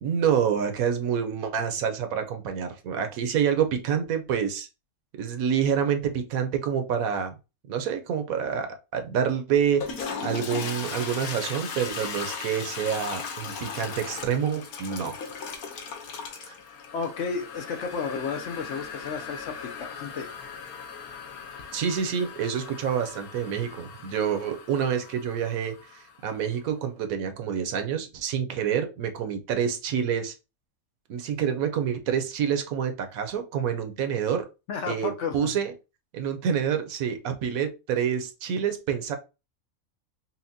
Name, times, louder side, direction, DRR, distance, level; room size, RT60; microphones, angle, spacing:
voice 1, 0.0-4.7 5.2-7.3 7.7-8.7 8.9-15.2 16.4-16.5 21.7-30.3 31.1-34.4 34.9-35.7 36.1-39.2, right 8 dB, 75° right, 1.1 m, -27 dB
Toilet flush, 9.6-26.4, left 5 dB, 85° left, 1.3 m, -38 dB
voice 2, 16.9-20.3 34.7-35.5, left 5 dB, 65° left, 0.8 m, -32 dB
5.6 x 2.1 x 2.6 m
omnidirectional pair, 1.5 m